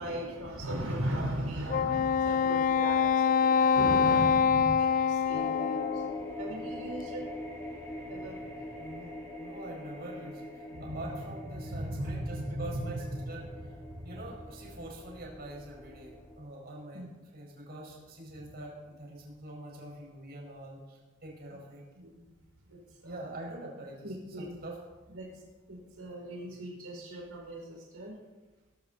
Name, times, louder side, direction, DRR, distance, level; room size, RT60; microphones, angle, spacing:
voice 1, 0.0-7.5 8.1-8.6 10.7-11.2 11.5-13.1 13.3-13.7 13.9-14.1 16.9-17.1 18.3-18.6 21.5-21.6 21.9-22.3 22.6-23.3 24.0-24.6 25.1-25.4 25.7-28.1, right 1 dB, 85° right, -1 dB, 4.6 m, -38 dB
Wind instrument woodwind instrument, 1.7-6.3, left 6 dB, 40° left, 0.4 m, -25 dB
sound 1, 5.3-16.4, left 1 dB, 10° left, 5.6 m, -43 dB
voice 2, 8.8-9.1 9.4-13.4 13.7-13.8 14.0-17.0 17.3-21.8 23.0-24.1 24.4-24.8, right 1 dB, 45° right, -2 dB, 5.2 m, -44 dB
21.5 x 13.5 x 4.1 m, 1.2 s
head